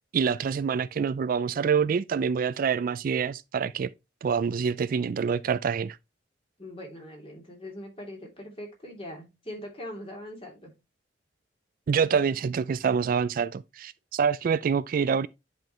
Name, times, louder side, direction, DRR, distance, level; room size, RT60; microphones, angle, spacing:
voice 1, 0.1-3.9 4.2-6.0 11.9-15.3, right 6 dB, 50° right, 0.3 m, -26 dB
voice 2, 6.6-10.7, left 1 dB, 30° left, 2.8 m, -41 dB
10.5 x 4.5 x 3.1 m
head